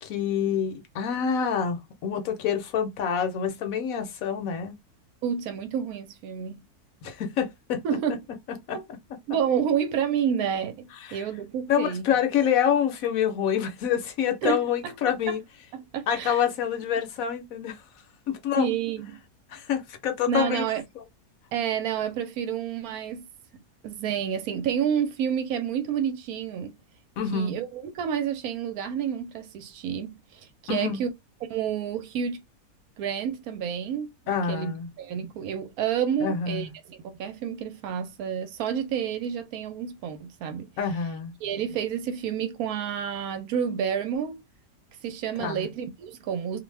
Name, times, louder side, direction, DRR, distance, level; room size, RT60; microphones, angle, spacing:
voice 1, 0.0-4.7 7.0-7.8 8.7-9.0 11.0-11.2 11.7-15.4 16.1-17.8 18.3-18.7 19.5-20.6 27.2-27.5 30.7-31.0 34.3-34.9 36.2-36.7 40.8-41.3 45.4-45.7, left 8 dB, 65° left, 1.0 m, -27 dB
voice 2, 5.2-6.6 7.8-8.2 8.7-8.8 9.3-12.0 14.4-15.4 15.7-16.4 18.6-19.2 20.3-20.8 21.5-23.3 23.5-26.8 27.3-31.1 31.5-32.4 33.0-40.7 41.4-44.4 45.0-46.6, right 8 dB, 75° right, 1.0 m, -29 dB
2.6 x 2.2 x 3.2 m
omnidirectional pair, 1.7 m